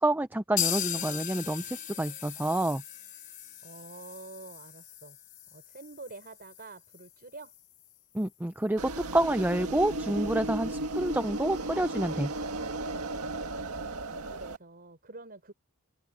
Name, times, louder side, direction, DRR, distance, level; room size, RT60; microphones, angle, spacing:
voice 1, 0.0-2.8 8.1-12.3, right 1 dB, 10° right, 0.6 m, -28 dB
sound 1, 0.6-8.3 8.6-8.7 9.0-9.1 9.5-9.6, left 10 dB, 40° left, 3.9 m, -38 dB
voice 2, 3.6-5.2 5.5-7.5 13.2-15.5, right 3 dB, 45° right, 5.6 m, -48 dB
sound 2, 8.8-14.6, right 2 dB, 75° right, 1.7 m, -35 dB
open air
head